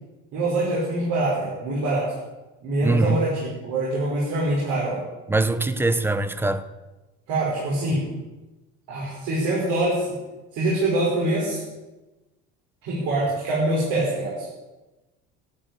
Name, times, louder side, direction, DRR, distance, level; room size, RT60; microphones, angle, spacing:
voice 1, 0.3-2.1 2.6-5.0 7.3-8.1 8.9-10.1 10.5-11.6 12.8-14.5, right 1 dB, 70° right, 5.5 m, -24 dB
voice 2, 2.8-3.2 5.3-6.7, right 3 dB, 5° right, 0.5 m, -22 dB
12.5 x 10.5 x 8.0 m
cardioid pair, 165°, 30 cm